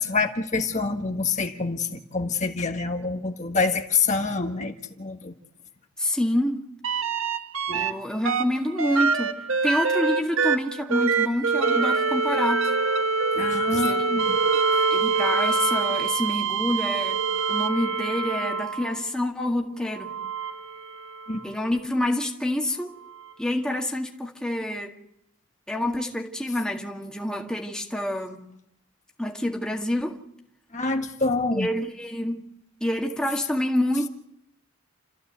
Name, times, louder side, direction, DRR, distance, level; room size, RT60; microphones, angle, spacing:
voice 1, 0.0-5.3 7.7-7.9 13.3-14.4 21.3-21.5 30.7-31.7, left 4 dB, 35° left, 1.6 m, -26 dB
voice 2, 6.0-6.6 7.7-9.4 9.6-12.7 13.8-14.5 14.9-20.1 21.4-23.0 23.4-24.9 25.7-28.4 29.2-30.2 31.5-32.5 32.8-34.1, left 1 dB, 5° left, 1.9 m, -27 dB
sound 1, 6.8-7.9 8.2-19.0 19.9-21.4 23.2-23.3, right 4 dB, 70° right, 1.3 m, -25 dB
29.5 x 14.5 x 8.1 m
head